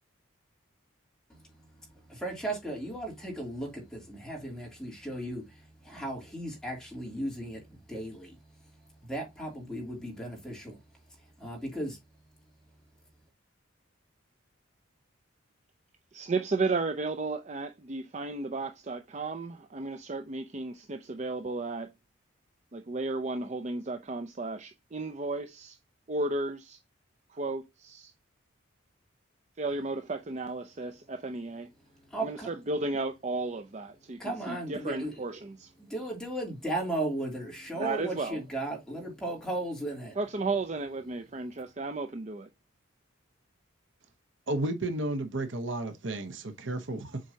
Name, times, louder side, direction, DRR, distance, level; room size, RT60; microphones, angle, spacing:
voice 1, 1.8-8.4 9.0-10.5 11.4-12.0 32.1-32.5 34.2-35.2 35.8-40.2, right 1 dB, 5° left, 2.8 m, -36 dB
voice 2, 16.1-21.9 22.7-25.8 26.1-26.8 27.3-28.1 29.6-31.7 32.2-35.7 37.8-38.4 40.2-42.5, right 3 dB, 35° right, 0.5 m, -34 dB
voice 3, 44.5-47.2, right 2 dB, 60° right, 0.9 m, -32 dB
7.5 x 4.6 x 2.8 m
head